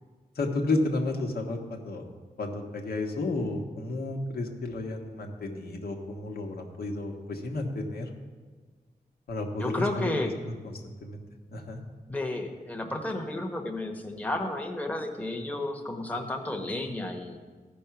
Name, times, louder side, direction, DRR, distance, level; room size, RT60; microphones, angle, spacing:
voice 1, 0.3-2.0 2.4-8.1 9.3-10.1 10.6-11.2 11.5-11.8, left 2 dB, 80° left, 2 dB, 1.4 m, -32 dB
voice 2, 9.6-10.3 12.1-17.4, left 2 dB, 10° left, 2 dB, 1.0 m, -32 dB
14.0 x 5.4 x 5.9 m, 1.4 s
wide cardioid pair, 95°, 16 cm